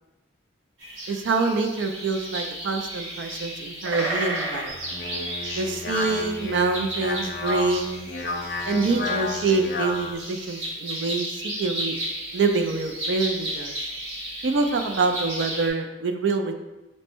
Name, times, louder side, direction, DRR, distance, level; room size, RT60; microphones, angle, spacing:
sound 1, 0.8-15.7, right 1 dB, 90° right, 1.1 m, -34 dB
voice 1, 1.1-4.8 5.5-8.1 8.7-12.0 12.3-13.7 14.4-16.5, right 3 dB, 75° right, 6 dB, 0.4 m, -26 dB
Speech, 4.7-10.1, left 2 dB, 50° left, 0.6 m, -31 dB
4.3 x 2.1 x 4.4 m, 1.0 s
head